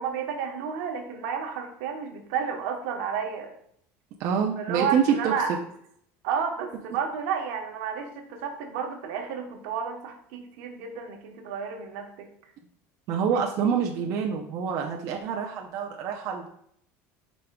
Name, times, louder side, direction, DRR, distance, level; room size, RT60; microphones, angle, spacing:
voice 1, 0.0-3.5 4.6-5.5 6.2-12.3 13.3-13.5, right 7 dB, 85° right, 3 dB, 1.1 m, -31 dB
voice 2, 4.2-5.3 13.1-16.5, right 7 dB, 55° right, 1 dB, 0.7 m, -26 dB
9.2 x 5.2 x 2.3 m, 0.69 s
cardioid pair, 145°, 7 cm